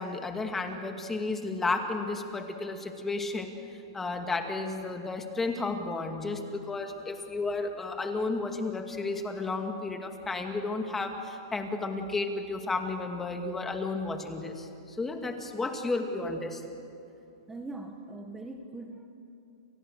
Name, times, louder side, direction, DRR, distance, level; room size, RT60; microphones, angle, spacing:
voice 1, 0.0-16.6, left 3 dB, 10° left, 4 dB, 2.3 m, -33 dB
voice 2, 17.5-19.1, right 2 dB, 10° right, 3 dB, 1.5 m, -41 dB
29.5 x 28.0 x 6.7 m, 2.7 s
hypercardioid pair, 145°, 3 cm